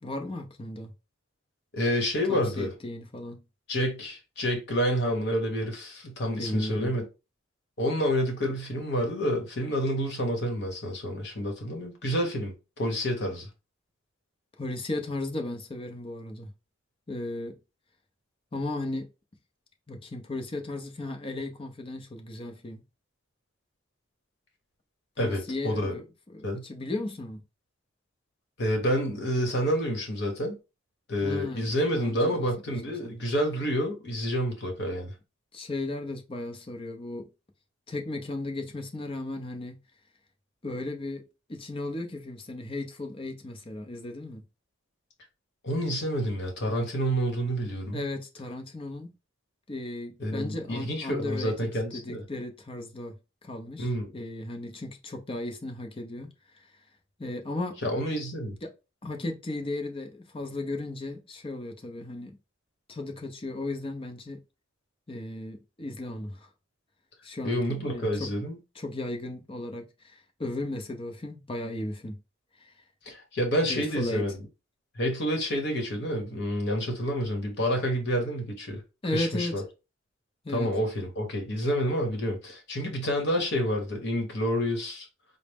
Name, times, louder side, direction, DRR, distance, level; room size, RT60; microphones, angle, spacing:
voice 1, 0.0-0.9 2.3-3.4 6.4-6.9 14.6-16.5 17.1-17.6 18.5-19.1 19.9-22.8 25.2-26.0 26.3-27.4 31.2-32.7 33.0-33.1 35.5-37.3 37.9-39.8 40.6-44.4 47.9-49.1 49.7-53.2 53.4-56.3 57.2-57.8 58.6-58.7 59.0-62.4 62.9-64.4 65.1-66.5 67.2-68.3 68.8-72.2 72.6-72.7 73.7-74.2 79.0-79.5 80.4-80.7, left 2 dB, 25° left, 0.6 m, -35 dB
voice 2, 1.7-2.7 3.7-7.1 7.8-13.5 25.2-26.0 26.4-26.6 28.6-30.6 31.1-35.1 45.6-48.0 50.2-52.2 53.8-54.1 57.8-58.5 67.4-68.6 73.0-74.5 74.9-78.8 79.1-79.6 80.5-85.1, equal, 55° left, 1.1 m, -28 dB
4.0 x 2.0 x 3.4 m
head